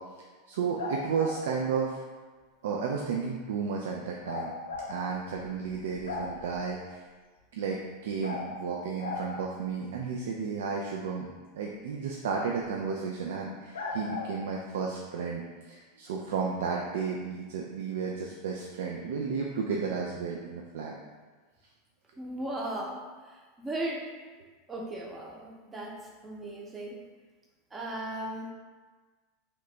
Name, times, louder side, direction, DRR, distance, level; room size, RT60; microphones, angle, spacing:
voice 1, 0.5-2.0 2.6-4.5 4.9-7.0 7.5-11.3 11.5-20.9, right 5 dB, 75° right, -1 dB, 0.3 m, -33 dB
sound 1, 0.8-1.4 4.3-4.9 5.4-5.5 5.7-6.6 8.2-8.4 9.0-9.3 12.6-12.7 13.7-14.3, left 4 dB, 90° left, 0.5 m, -36 dB
voice 2, 22.2-24.1 24.7-27.0 27.7-28.5, right 1 dB, 20° right, -1 dB, 0.7 m, -37 dB
2.9 x 2.5 x 3.2 m, 1.4 s
hypercardioid pair, 95°, 0 cm